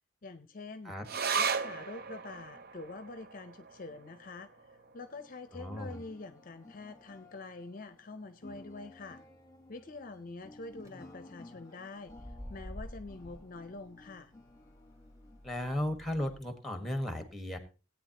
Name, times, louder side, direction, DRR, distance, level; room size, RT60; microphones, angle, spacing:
voice 1, 0.2-1.0 1.3-4.5 4.9-9.2 9.7-14.3, left 3 dB, 45° left, 11 dB, 0.6 m, -46 dB
sound 1, 1.0-7.8 8.1-8.2 8.6-9.2 9.8-9.9, right 5 dB, 50° right, 0.6 m, -39 dB
sound 2, 2.2-16.8, left 2 dB, 15° left, 1.2 m, -57 dB
voice 2, 5.5-6.0 15.4-17.6, left 1 dB, ahead, 7 dB, 1.4 m, -35 dB
sound 3, 10.5-10.9 12.0-16.4, equal, 15° right, 2.7 m, -49 dB
17.5 x 8.8 x 2.9 m, 0.32 s
head